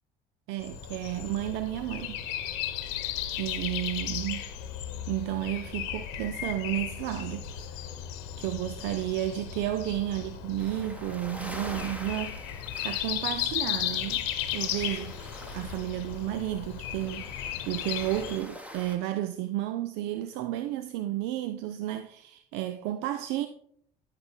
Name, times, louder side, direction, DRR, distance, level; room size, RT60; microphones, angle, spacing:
voice 1, 0.5-2.2 3.4-4.4 5.1-7.9 8.4-12.4 12.8-14.2 14.5-15.2 15.5-23.5, right 13 dB, 60° right, 0.5 m, -32 dB
Breathing, 0.6-18.4, left 10 dB, 65° left, 1.0 m, -35 dB
sound 1, 10.6-19.0, equal, 5° right, 1.4 m, -46 dB
12.5 x 5.8 x 3.4 m
figure-of-eight pair, 55°, 20 cm